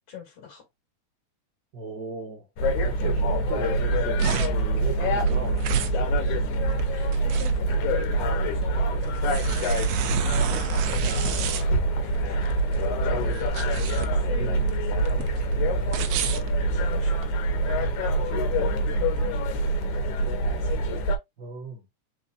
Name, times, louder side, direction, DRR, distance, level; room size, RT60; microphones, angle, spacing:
voice 1, 0.1-0.6 3.0-3.5 4.8-5.2 6.3-6.4 6.7-12.5 13.0-13.7 14.1-15.4 16.1-17.2 18.2-20.9, left 8 dB, 55° left, 2.6 m, -43 dB
voice 2, 1.7-2.5 2.8-5.6 13.1-13.4 14.4-14.7 21.4-21.9, right 4 dB, 60° right, 1.1 m, -36 dB
sound 1, 2.6-21.2, right 1 dB, 75° left, 2.2 m, -25 dB
sound 2, 3.8-17.3, right 9 dB, 85° right, 1.4 m, -33 dB
4.5 x 4.2 x 2.6 m
omnidirectional pair, 3.6 m